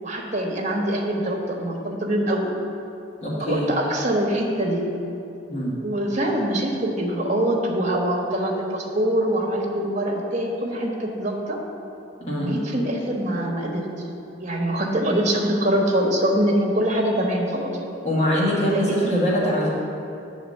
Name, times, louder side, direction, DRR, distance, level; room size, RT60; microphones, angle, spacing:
voice 1, 0.0-2.5 3.4-4.9 5.8-11.6 12.4-13.9 14.4-17.7 18.7-19.2, right 1 dB, 40° right, -1 dB, 1.1 m, -24 dB
voice 2, 3.2-3.7 5.5-5.7 12.3-12.5 18.0-19.7, equal, 35° left, -6 dB, 1.4 m, -23 dB
8.9 x 3.9 x 6.5 m, 2.8 s
head